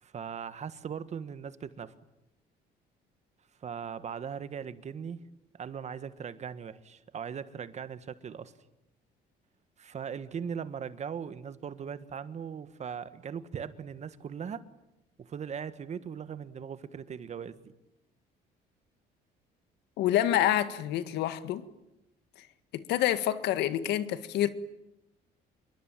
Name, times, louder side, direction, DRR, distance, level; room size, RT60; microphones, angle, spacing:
voice 1, 0.0-2.0 3.6-5.2 5.5-8.5 9.8-14.6 15.2-17.7, right 7 dB, 40° right, 1.7 m, -39 dB
voice 2, 20.0-21.6 22.7-24.5, left 12 dB, 85° left, 1.9 m, -27 dB
27.0 x 23.0 x 9.1 m
cardioid pair, 110°, 17 cm